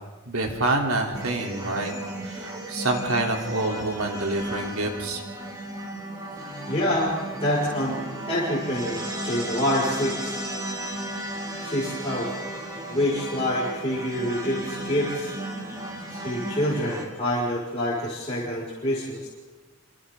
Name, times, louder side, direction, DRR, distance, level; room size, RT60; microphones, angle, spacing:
voice 1, 0.3-1.9 2.2-5.2, right 2 dB, 90° right, 1 dB, 3.6 m, -27 dB
sound 1, 1.1-17.0, right 1 dB, 20° right, 3.5 m, -35 dB
voice 2, 6.7-8.0 8.3-10.4 11.6-12.3 12.9-15.3 16.1-19.3, equal, 30° left, -9 dB, 5.5 m, -26 dB
28.0 x 27.0 x 3.9 m, 1.2 s
head